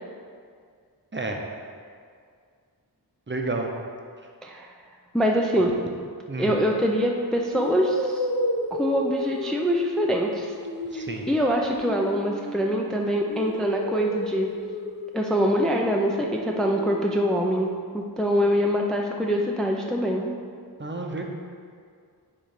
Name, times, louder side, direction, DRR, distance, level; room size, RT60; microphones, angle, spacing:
voice 1, 3.3-3.7 6.3-6.5 10.9-11.3 20.8-21.2, right 2 dB, 30° right, 2 dB, 0.8 m, -30 dB
voice 2, 5.1-5.7 6.4-8.3 8.7-10.5 10.9-14.5 15.1-17.7 17.9-20.3, equal, ahead, 0 dB, 0.5 m, -24 dB
sound 1, 6.5-6.7 7.5-12.9 13.3-17.2, left 1 dB, 75° left, 1.0 m, -33 dB
9.0 x 3.2 x 5.0 m, 2.1 s
wide cardioid pair, 65°, 39 cm